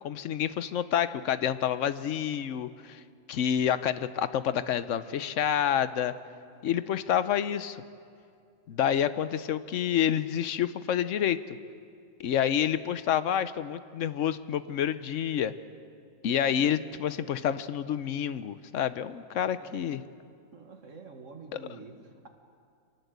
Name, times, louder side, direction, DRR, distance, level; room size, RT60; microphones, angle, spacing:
voice 1, 0.0-3.0 3.3-6.1 6.6-7.8 8.7-11.6 12.2-15.5 16.2-20.0, left 9 dB, 60° left, 13 dB, 1.0 m, -28 dB
voice 2, 20.5-22.3, right 3 dB, 50° right, 4 dB, 2.1 m, -47 dB
24.0 x 19.0 x 8.1 m, 2.3 s
omnidirectional pair, 1.7 m